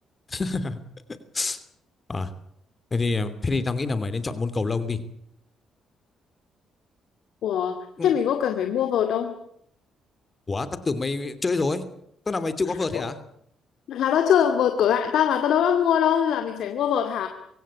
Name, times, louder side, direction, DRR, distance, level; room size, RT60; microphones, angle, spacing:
voice 1, 0.3-0.8 1.3-1.6 2.1-2.3 2.9-5.0 8.0-8.1 10.5-11.8 12.3-13.2, left 3 dB, 30° left, 13 dB, 2.9 m, -27 dB
voice 2, 7.4-9.4 12.7-13.1 13.9-17.3, left 9 dB, 75° left, 6 dB, 2.2 m, -23 dB
24.5 x 16.5 x 10.0 m, 0.72 s
cardioid pair, 90°, 0 cm